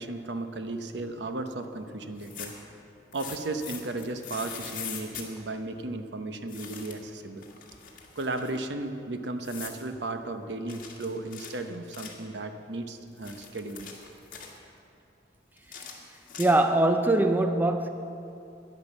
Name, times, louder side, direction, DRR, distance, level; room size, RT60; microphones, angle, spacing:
voice 1, 0.0-2.5 3.1-7.5 8.2-13.9, right 2 dB, 70° right, 7 dB, 0.8 m, -35 dB
sound 1, 2.1-2.7 3.1-5.3 6.5-7.1 7.4-8.6 9.4-9.8 10.7-12.3 13.0-14.6 15.6-16.8, left 7 dB, 50° left, 1.7 m, -42 dB
voice 2, 16.4-17.9, right 1 dB, 10° right, 7 dB, 0.4 m, -22 dB
10.5 x 10.5 x 7.1 m, 2.7 s
head